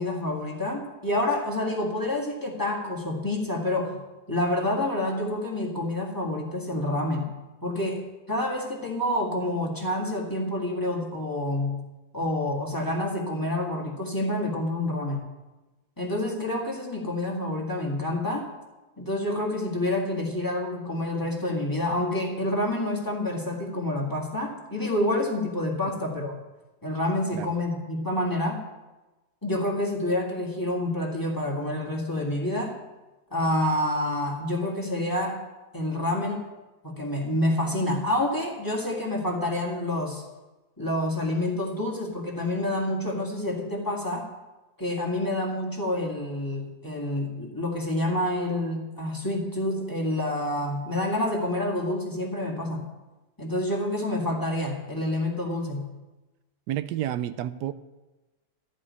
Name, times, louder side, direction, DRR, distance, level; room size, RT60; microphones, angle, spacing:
voice 1, 0.0-4.0 4.3-7.3 7.6-8.0 8.3-11.8 12.1-15.2 16.0-18.5 19.0-26.4 26.8-28.6 29.4-32.8 33.3-35.4 35.7-36.4 36.8-40.2 40.8-44.3 44.8-52.8 53.4-55.9, left 1 dB, 10° left, 1.8 m, -28 dB
voice 2, 56.7-57.7, right 12 dB, 90° right, 1.2 m, -30 dB
14.0 x 5.3 x 9.4 m
omnidirectional pair, 1.7 m